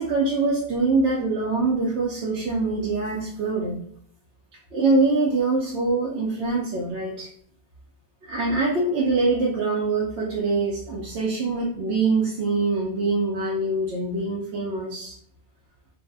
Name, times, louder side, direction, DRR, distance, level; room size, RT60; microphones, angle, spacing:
voice 1, 0.0-3.8 4.7-7.3 8.2-15.2, right 3 dB, 65° right, -4 dB, 0.8 m, -24 dB
2.6 x 2.0 x 3.3 m, 0.63 s
omnidirectional pair, 1.2 m